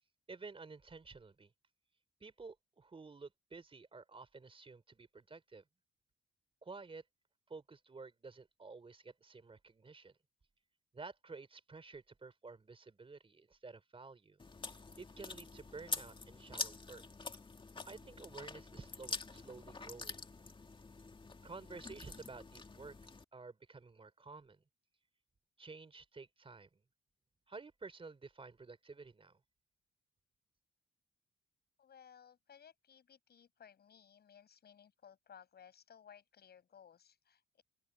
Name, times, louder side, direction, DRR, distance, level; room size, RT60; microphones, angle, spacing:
voice 1, 0.3-1.5 2.2-5.6 6.6-7.0 7.5-10.2 10.9-14.4 15.0-17.0 17.9-20.2 21.4-23.0 23.3-24.6 25.6-26.8 27.5-29.4, right 4 dB, 25° right, 3.7 m, -52 dB
Chewing mastication, 14.4-23.2, left 3 dB, 25° left, 2.2 m, -46 dB
voice 2, 31.8-37.6, left 8 dB, 55° left, 7.7 m, -60 dB
open air
cardioid pair, 90°, 20 cm